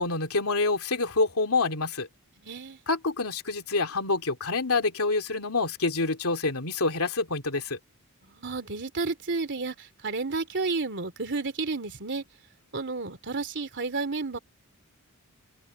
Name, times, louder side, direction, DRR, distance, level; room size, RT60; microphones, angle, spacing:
voice 1, 0.0-2.1 2.9-7.8, left 3 dB, 70° left, 3.0 m, -27 dB
voice 2, 2.4-2.8 8.2-12.2 12.7-14.4, right 3 dB, 55° right, 3.2 m, -31 dB
open air
head